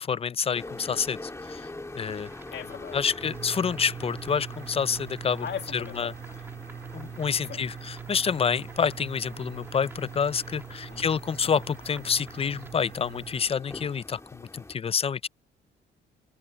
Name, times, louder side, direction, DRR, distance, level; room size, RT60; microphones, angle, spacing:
voice 1, 0.0-1.6 1.9-2.3 2.9-5.4 6.0-6.1 6.9-15.3, left 6 dB, 30° left, 0.4 m, -28 dB
sound 1, 0.5-14.7, left 2 dB, 15° left, 2.1 m, -45 dB
sound 2, 2.0-12.7, right 2 dB, 10° right, 2.0 m, -53 dB
voice 2, 2.5-3.2 5.4-6.1 7.4-7.6 10.9-11.1, left 8 dB, 55° left, 1.7 m, -38 dB
sound 3, 3.2-13.4, right 8 dB, 60° right, 2.9 m, -42 dB
cardioid pair, 90°, 20 cm